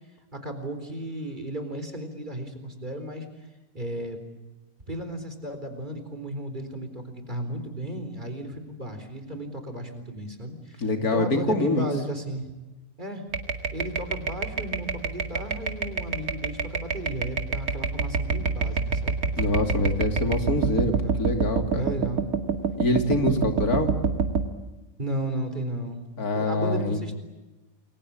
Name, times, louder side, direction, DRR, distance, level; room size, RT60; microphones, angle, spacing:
voice 1, 0.3-3.5 3.7-4.2 4.9-10.9 11.1-12.5 13.0-13.2 13.7-19.2 20.9-21.2 21.7-22.2 25.0-27.1, right 1 dB, 30° right, 8 dB, 4.1 m, -34 dB
voice 2, 10.8-11.9 19.4-21.9 22.8-23.9 26.2-27.1, left 2 dB, 85° left, 5 dB, 3.3 m, -25 dB
sound 1, 13.3-24.5, right 5 dB, 75° right, 2.6 m, -27 dB
28.5 x 22.5 x 8.7 m, 1.1 s
omnidirectional pair, 1.5 m